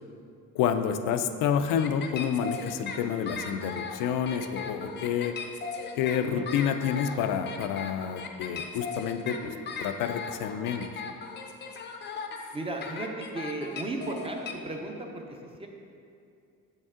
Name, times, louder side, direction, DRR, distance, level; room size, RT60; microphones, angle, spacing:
voice 1, 0.5-5.4 6.0-9.5 9.8-10.9, left 8 dB, 85° left, 8 dB, 0.5 m, -29 dB
sound 1, 1.8-14.5, left 5 dB, 35° left, 0.5 m, -38 dB
voice 2, 6.3-6.7 12.5-15.7, right 2 dB, 20° right, 2 dB, 0.5 m, -36 dB
6.5 x 5.3 x 3.6 m, 2.5 s
cardioid pair, 140°, 31 cm